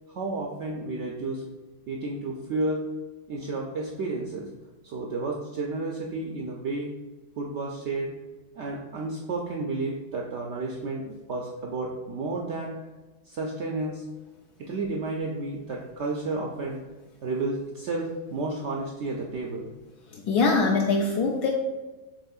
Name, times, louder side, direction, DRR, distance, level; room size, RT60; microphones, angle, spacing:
voice 1, 0.1-1.4 1.9-2.9 3.3-4.5 4.8-6.9 7.4-8.1 8.5-12.7 13.3-14.0 14.6-16.8 17.2-19.7, right 2 dB, 80° right, -1 dB, 0.6 m, -31 dB
voice 2, 20.1-21.5, left 3 dB, 80° left, 0 dB, 1.1 m, -23 dB
7.2 x 3.1 x 2.3 m, 1.2 s
omnidirectional pair, 1.7 m